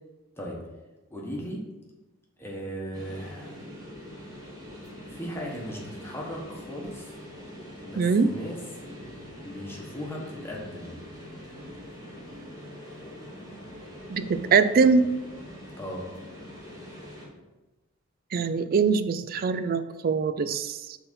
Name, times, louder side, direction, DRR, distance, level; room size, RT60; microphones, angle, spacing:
voice 1, 1.1-1.6 2.4-3.6 5.0-7.1 7.8-8.6 9.4-11.0 15.7-16.1, equal, 10° left, -2 dB, 1.3 m, -37 dB
sound 1, 2.9-17.3, equal, 20° right, 1.7 m, -43 dB
voice 2, 8.0-8.3 14.1-15.1 18.3-21.0, right 5 dB, 45° right, 11 dB, 0.4 m, -23 dB
5.9 x 4.0 x 5.6 m, 1.1 s
head